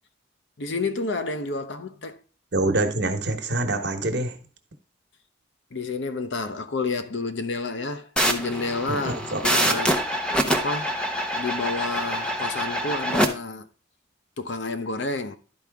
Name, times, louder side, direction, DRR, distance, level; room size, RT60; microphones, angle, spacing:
voice 1, 0.6-2.2 5.7-11.1 11.3-13.7 14.4-15.4, left 3 dB, 70° left, 0.7 m, -30 dB
voice 2, 2.5-4.4 8.9-9.8, right 2 dB, 60° right, 1.1 m, -26 dB
sound 1, 8.2-13.3, equal, 5° left, 0.7 m, -25 dB
12.0 x 4.8 x 3.5 m
head